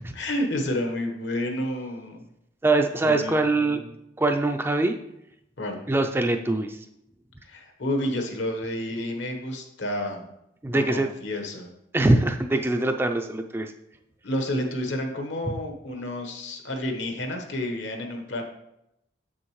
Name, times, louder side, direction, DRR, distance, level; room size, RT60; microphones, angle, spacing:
voice 1, 0.1-2.3 3.0-3.9 5.6-5.8 7.4-10.3 10.7-11.7 14.2-18.4, left 1 dB, 75° left, 4 dB, 1.1 m, -30 dB
voice 2, 2.6-3.8 4.2-5.0 5.9-6.8 10.6-11.1 11.9-13.7, right 2 dB, 10° right, 5 dB, 0.3 m, -23 dB
7.6 x 6.3 x 3.1 m, 0.83 s
head